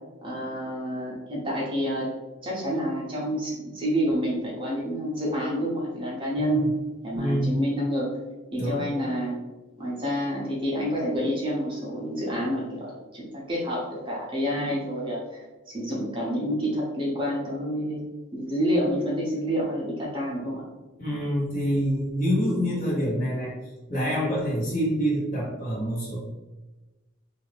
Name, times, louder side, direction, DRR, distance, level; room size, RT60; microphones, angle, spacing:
voice 1, 0.2-2.1 2.4-6.7 7.0-8.1 8.5-9.4 9.8-15.4 15.7-18.0 18.3-20.6, equal, 25° right, -5 dB, 0.7 m, -28 dB
voice 2, 6.4-6.7 7.1-7.6 8.6-8.9 21.0-23.6 23.9-26.2, equal, 40° left, -6 dB, 1.1 m, -26 dB
2.7 x 2.4 x 3.3 m, 1.1 s
head